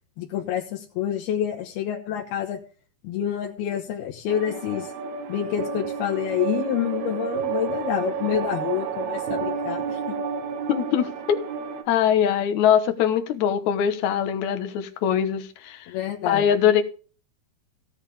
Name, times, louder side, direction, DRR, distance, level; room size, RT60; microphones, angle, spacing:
voice 1, 0.2-2.6 3.0-4.9 5.3-10.1 15.9-16.5, left 10 dB, 85° left, 3.2 m, -28 dB
sound 1, 4.3-11.8, right 7 dB, 85° right, 3.5 m, -30 dB
voice 2, 10.7-11.4 11.9-15.9 16.2-16.8, left 9 dB, 60° left, 2.3 m, -22 dB
16.5 x 9.0 x 3.5 m
omnidirectional pair, 4.4 m